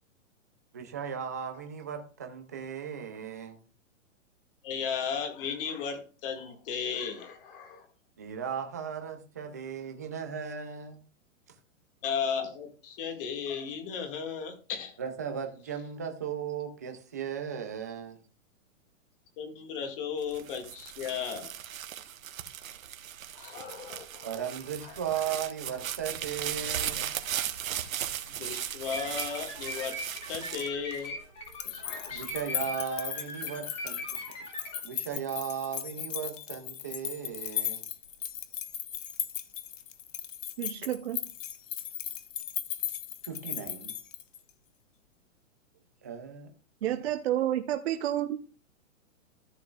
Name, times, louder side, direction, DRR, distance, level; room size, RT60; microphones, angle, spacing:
voice 1, 0.7-3.6 8.2-11.0 15.0-18.2 24.2-27.2 32.1-34.5 34.8-37.8 43.4-43.9 46.0-46.5, right 7 dB, 15° right, 5 dB, 0.4 m, -36 dB
voice 2, 4.6-7.9 12.0-15.0 19.4-21.5 23.4-24.3 24.8-25.3 28.2-30.0 30.2-31.2 31.6-32.2, left 6 dB, 40° left, 5 dB, 2.0 m, -35 dB
sound 1, 20.2-31.6 32.1-32.7, right 10 dB, 80° right, 1.2 m, -37 dB
sound 2, 28.8-34.8, left 1 dB, 15° left, 1.5 m, -41 dB
sound 3, 31.5-44.5, left 10 dB, 65° left, 1.1 m, -37 dB
voice 3, 40.6-41.2 46.8-48.4, right 12 dB, 50° right, 5 dB, 0.8 m, -30 dB
14.0 x 7.0 x 2.4 m, 0.36 s
hypercardioid pair, 160°, 40 cm